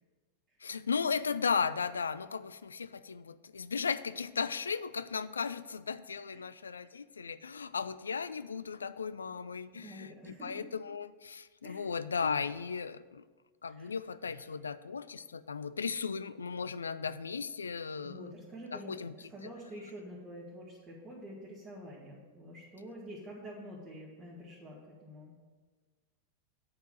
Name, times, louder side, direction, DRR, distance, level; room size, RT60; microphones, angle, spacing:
voice 1, 0.6-13.2 13.6-18.3 18.7-19.1, left 5 dB, 70° left, 14 dB, 0.3 m, -36 dB
voice 2, 9.7-10.6 11.6-11.9 13.7-13.9 18.0-25.4, equal, 15° right, -7 dB, 2.0 m, -47 dB
9.4 x 4.5 x 7.5 m, 1.4 s
figure-of-eight pair, 90°, 0 cm